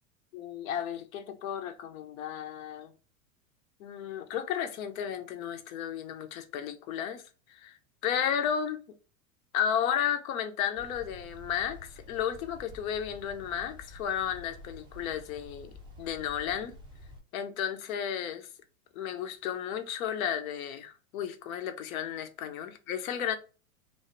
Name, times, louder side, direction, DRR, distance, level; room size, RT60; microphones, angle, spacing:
voice 1, 0.3-2.9 3.8-7.2 7.5-7.8 8.0-8.8 9.5-15.7 16.0-16.7 17.3-18.5 18.9-23.4, left 9 dB, 70° left, 0.6 m, -33 dB
sound 1, 10.7-17.2, left 1 dB, 10° right, 0.3 m, -49 dB
2.5 x 2.1 x 2.5 m
hypercardioid pair, 110°, 44 cm